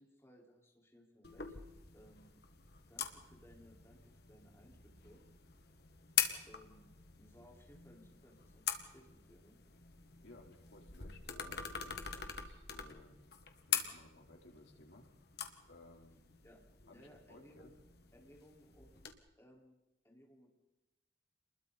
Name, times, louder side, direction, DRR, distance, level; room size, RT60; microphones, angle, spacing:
voice 1, 0.0-1.5 1.9-2.3 2.9-5.2 6.5-6.9 7.2-9.6 16.4-16.6 16.9-17.8 18.1-19.1 19.4-19.8 20.0-20.5, equal, 15° left, -2 dB, 4.9 m, -62 dB
sound 1, 1.2-19.1, left 9 dB, 60° left, 1.8 m, -44 dB
voice 2, 10.2-13.1 13.7-15.1 15.7-16.2 16.9-17.7, left 2 dB, 85° left, 1 dB, 4.1 m, -59 dB
28.5 x 21.5 x 4.3 m, 0.99 s
head